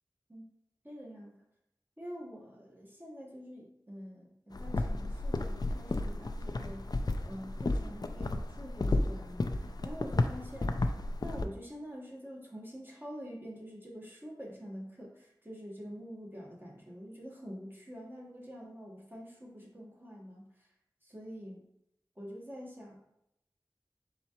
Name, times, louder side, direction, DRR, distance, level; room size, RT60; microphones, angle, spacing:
voice 1, 0.8-1.4 2.0-6.9 7.2-10.8 11.2-20.7 21.0-21.7 22.2-23.0, equal, 25° right, -3 dB, 1.3 m, -46 dB
sound 1, 4.5-11.4, left 2 dB, 55° left, 0.3 m, -33 dB
4.2 x 3.6 x 2.9 m, 0.82 s
wide cardioid pair, 40°, 8 cm